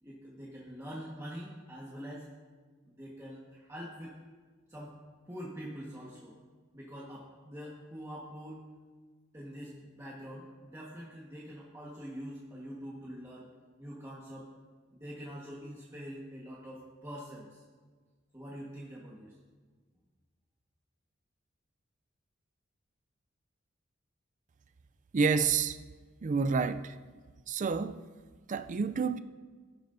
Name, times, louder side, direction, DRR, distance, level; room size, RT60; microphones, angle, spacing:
voice 1, 0.0-2.3 2.8-4.1 4.7-5.0 5.3-6.4 6.7-8.6 9.3-13.5 13.8-14.5 14.9-17.6 18.3-19.3, equal, 15° right, 1.4 m, -44 dB
voice 2, 25.1-25.8 26.2-27.0 27.5-28.0 28.5-29.2, right 5 dB, 40° right, 0.4 m, -29 dB
18.0 x 11.0 x 2.7 m
head